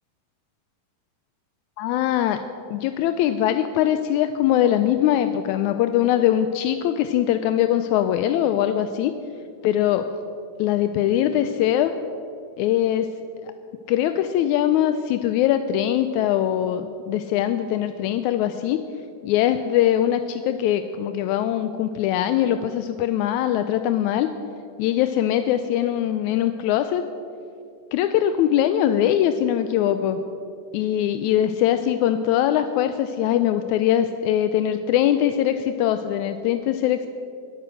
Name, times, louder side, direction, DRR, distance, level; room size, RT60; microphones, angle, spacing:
voice 1, 1.8-2.4 2.7-9.1 9.6-10.1 10.6-11.9 12.6-13.1 13.4-13.5 13.9-18.8 19.2-24.3 24.8-27.0 27.9-30.2 30.7-37.1, left 11 dB, 80° left, 9 dB, 1.8 m, -22 dB
21.0 x 9.0 x 6.3 m, 2.6 s
omnidirectional pair, 3.8 m